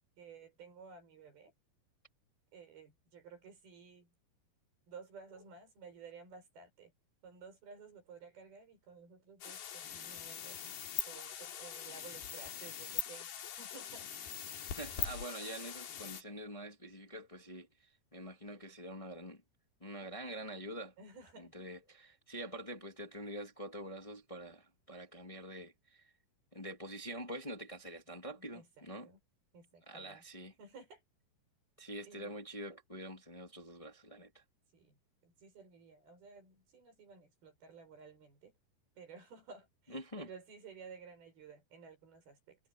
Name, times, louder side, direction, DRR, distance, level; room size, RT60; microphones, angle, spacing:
voice 1, 0.2-1.5 2.5-4.1 4.9-6.9 7.2-10.8 11.1-13.3 13.6-14.1 21.0-21.6 28.3-29.2 29.5-30.2 30.6-31.0 32.0-32.4 34.7-35.0 35.2-38.5 39.0-42.6, right 5 dB, 75° right, 8.4 m, -54 dB
sound 1, 9.4-16.2, left 9 dB, 90° left, 4.5 m, -42 dB
voice 2, 14.7-19.4 19.8-20.9 21.4-26.1 26.5-29.1 29.8-30.5 31.8-34.4 39.9-40.3, right 1 dB, 15° left, 1.0 m, -46 dB
omnidirectional pair, 4.5 m